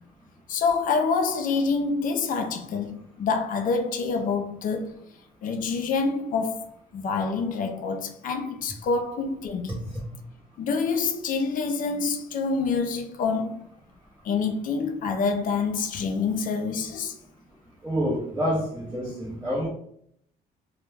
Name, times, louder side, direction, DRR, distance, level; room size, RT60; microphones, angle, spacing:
voice 1, 0.5-4.9 5.4-9.8 10.6-13.6 14.2-17.1, left 4 dB, 55° left, 0.4 m, -27 dB
voice 2, 9.7-10.0 17.8-19.7, equal, 15° right, 0.7 m, -28 dB
2.2 x 2.1 x 3.2 m
cardioid pair, 110°, 17 cm